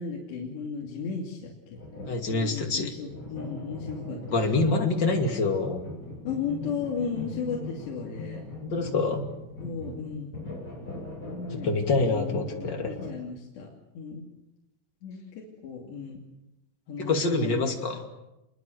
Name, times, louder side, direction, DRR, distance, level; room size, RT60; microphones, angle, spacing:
voice 1, 0.0-1.8 2.3-4.7 6.2-8.4 9.6-10.3 11.2-14.3 15.0-16.2 16.9-17.7, left 6 dB, 60° left, -2 dB, 4.7 m, -35 dB
sound 1, 1.7-2.5 3.1-13.1, left 2 dB, 15° left, 7.8 m, -40 dB
voice 2, 2.1-2.9 4.3-5.8 8.6-9.3 11.5-12.9 17.0-18.0, left 3 dB, 35° left, 3 dB, 2.1 m, -26 dB
27.5 x 22.5 x 7.9 m, 0.94 s
omnidirectional pair, 5.8 m